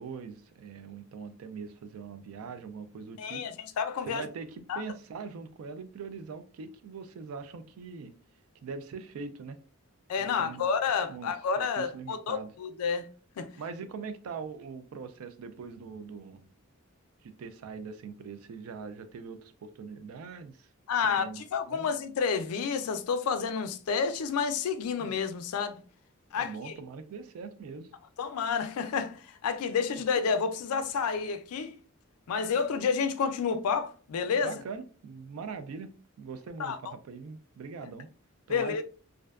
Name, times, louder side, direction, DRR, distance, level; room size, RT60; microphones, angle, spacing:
voice 1, 0.0-3.4 4.0-8.1 8.6-9.6 10.2-12.5 13.6-16.5 17.2-20.7 21.2-21.4 21.7-21.9 25.0-25.1 26.3-27.9 34.4-38.1 38.5-38.8, right 5 dB, 75° right, 0.3 m, -42 dB
voice 2, 3.2-4.2 4.7-4.8 10.1-13.1 13.4-13.5 20.9-25.8 26.3-26.7 28.2-31.8 32.3-34.5 36.6-36.8 38.5-38.8, left 6 dB, 85° left, 0.4 m, -30 dB
2.5 x 2.1 x 2.3 m
head